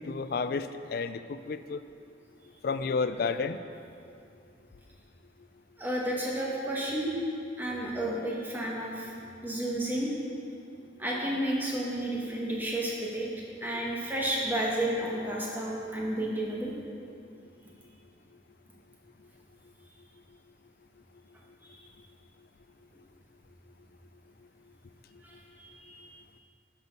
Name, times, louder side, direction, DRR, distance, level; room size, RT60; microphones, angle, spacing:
voice 1, 0.0-1.8 2.6-3.6, left 4 dB, 50° left, 11 dB, 0.4 m, -31 dB
voice 2, 5.8-7.1 7.6-9.1 9.4-10.1 11.0-13.3 13.6-16.7 21.7-21.9 25.2-26.1, right 1 dB, 10° right, -3 dB, 1.3 m, -32 dB
10.5 x 6.1 x 5.3 m, 2.5 s
head